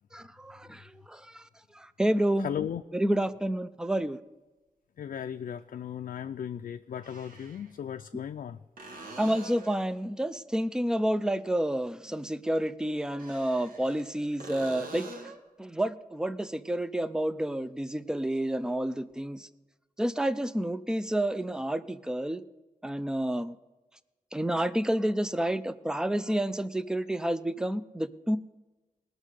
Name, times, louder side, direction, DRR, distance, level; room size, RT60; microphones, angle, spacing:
voice 1, 0.1-1.5 1.7-2.5 2.9-4.2 9.2-15.3 15.6-19.5 20.0-22.4 22.8-23.6 24.3-28.4, right 1 dB, 5° right, 14 dB, 0.5 m, -29 dB
voice 2, 2.4-2.8 5.0-8.6, left 9 dB, 70° left, 7 dB, 0.4 m, -36 dB
sound 1, 3.4-3.5 5.6-5.7 6.9-7.7 8.8-9.9 13.0-14.1 14.4-15.5 19.1-19.2, right 2 dB, 85° right, 1.5 m, -45 dB
19.0 x 6.4 x 4.9 m, 1.2 s
wide cardioid pair, 85°, 14 cm